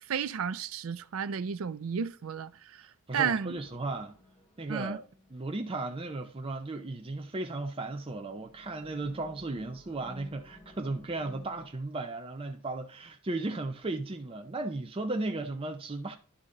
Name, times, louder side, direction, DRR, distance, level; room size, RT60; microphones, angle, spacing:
voice 1, 0.1-2.9 3.1-3.6 4.7-5.0, right 7 dB, 65° right, 0.5 m, -32 dB
voice 2, 3.1-4.1 4.6-5.0 5.3-16.2, right 2 dB, 25° right, 0.6 m, -35 dB
sound 1, 3.5-6.3 7.9-11.7, left 1 dB, 20° left, 2.2 m, -55 dB
11.5 x 4.0 x 3.7 m
head